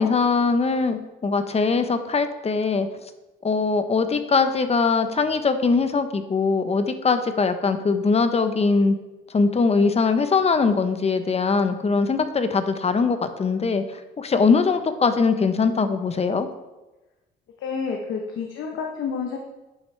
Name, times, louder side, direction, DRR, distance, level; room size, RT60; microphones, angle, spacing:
voice 1, 0.0-2.9 3.4-8.9 9.3-16.5, left 4 dB, 30° left, 9 dB, 0.8 m, -21 dB
voice 2, 17.6-19.4, left 5 dB, 80° left, 2 dB, 0.9 m, -29 dB
10.5 x 5.9 x 3.3 m, 1.1 s
cardioid pair, 90°, 20 cm